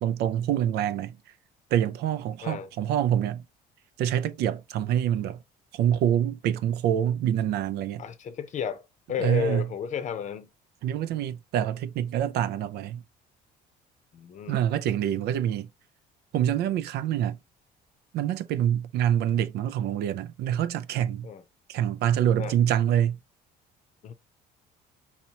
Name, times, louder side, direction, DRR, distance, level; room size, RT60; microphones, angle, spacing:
voice 1, 0.0-1.2 1.7-3.4 4.0-5.4 5.7-8.0 9.2-9.6 10.8-13.0 14.5-15.7 16.3-17.4 18.1-21.3 21.7-23.2, right 10 dB, 75° right, 0.4 m, -26 dB
voice 2, 8.0-10.5 11.6-11.7 14.1-14.6 21.2-21.4 22.4-22.6 24.0-24.1, left 7 dB, 45° left, 0.7 m, -33 dB
4.2 x 2.9 x 2.8 m
cardioid pair, 110°, 17 cm